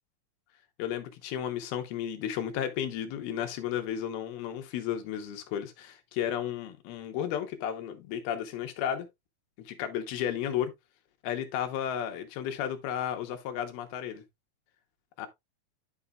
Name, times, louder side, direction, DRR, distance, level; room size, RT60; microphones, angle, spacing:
voice 1, 0.8-9.1 9.6-10.7 11.2-14.2 15.2-15.3, left 10 dB, 80° left, 3.0 m, -33 dB
11.0 x 5.6 x 2.3 m
omnidirectional pair, 4.5 m